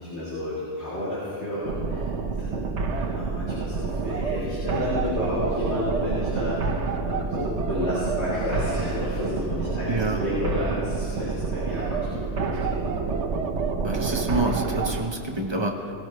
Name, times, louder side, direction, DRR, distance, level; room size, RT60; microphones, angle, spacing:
voice 1, 0.0-2.1 2.4-2.7 3.0-6.8 7.0-12.2 12.6-12.7, left 1 dB, 70° left, -9 dB, 3.7 m, -31 dB
sound 1, 1.6-15.0, right 4 dB, 80° right, 1.2 m, -28 dB
sound 2, 3.8-13.4, left 5 dB, 55° left, 1.2 m, -43 dB
voice 2, 9.9-10.2 13.8-15.9, right 2 dB, 25° right, 2 dB, 1.0 m, -27 dB
20.0 x 14.0 x 3.2 m, 2.7 s
omnidirectional pair, 1.2 m